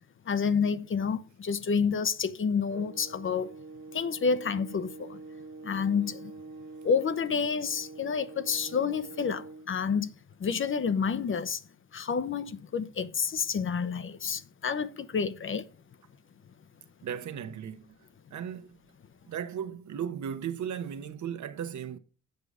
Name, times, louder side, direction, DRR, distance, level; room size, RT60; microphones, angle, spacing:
voice 1, 0.3-3.5 3.9-5.2 5.6-6.3 6.8-10.1 10.4-11.6 11.9-15.6, left 6 dB, 40° left, 0.7 m, -29 dB
sound 1, 2.7-9.7, right 3 dB, 90° right, 1.3 m, -45 dB
voice 2, 17.0-17.9 18.3-18.8 19.3-22.0, right 8 dB, 65° right, 1.1 m, -36 dB
8.0 x 6.7 x 4.9 m
cardioid pair, 105°, 31 cm